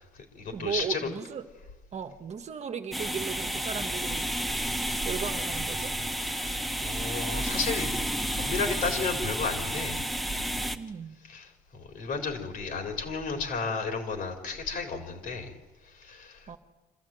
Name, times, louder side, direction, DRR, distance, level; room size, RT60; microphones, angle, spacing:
voice 1, 0.0-1.1 6.1-8.0 8.4-10.1 11.3-16.6, left 4 dB, 60° left, 4.2 m, -33 dB
voice 2, 0.5-1.4 1.9-4.3 5.0-6.0 10.7-11.2 16.5-16.6, right 7 dB, 40° right, 1.5 m, -36 dB
sound 1, 2.9-10.8, right 1 dB, ahead, 1.2 m, -31 dB
27.0 x 13.5 x 9.2 m
cardioid pair, 110°, 17 cm